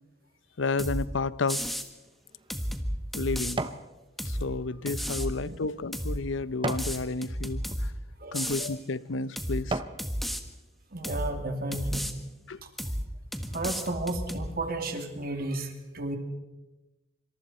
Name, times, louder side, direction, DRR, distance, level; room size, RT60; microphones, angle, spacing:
voice 1, 0.6-1.6 3.1-3.7 4.2-7.9 8.3-9.8 12.5-12.6, left 3 dB, 75° left, 16 dB, 0.7 m, -31 dB
sound 1, 0.8-1.1 1.5-1.9 2.5-3.6 4.2-4.5 4.9-5.3 5.9-6.2 6.7-7.9 8.3-8.7 9.4-9.6 10.0-10.4 11.0-11.3 11.7-12.1 12.8-13.1 13.3-14.5, equal, ahead, 1.5 m, -32 dB
sound 2, 2.0-3.9 4.4-7.0 7.6-7.8 8.5-8.7 9.2-10.0 10.5-10.6, right 2 dB, 25° right, 0.9 m, -37 dB
voice 2, 5.1-5.6 8.2-8.5 10.9-12.1 12.6-12.7 13.5-16.2, right 2 dB, 50° right, 4 dB, 2.8 m, -33 dB
26.0 x 26.0 x 4.4 m, 1.1 s
head